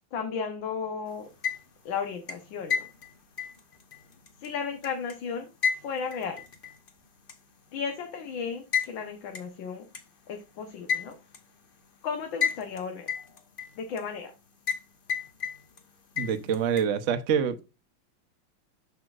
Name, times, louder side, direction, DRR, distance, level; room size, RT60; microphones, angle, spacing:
voice 1, 0.1-1.3 1.9-2.8 4.4-5.5 5.8-6.4 7.7-9.8 10.3-11.1 12.0-13.1 13.8-14.3, left 6 dB, 70° left, 1.8 m, -34 dB
sound 1, 1.2-1.9 2.3-5.1 5.6-6.9 7.3-7.4 8.7-8.9 9.3-9.4 9.9-10.0 10.9-11.4 12.4-12.8 13.1-14.0 14.7-14.8 15.1-15.8 16.2-16.8, left 7 dB, 45° left, 0.7 m, -31 dB
voice 2, 16.2-17.6, right 7 dB, 60° right, 0.8 m, -26 dB
12.5 x 5.6 x 2.4 m
omnidirectional pair, 2.2 m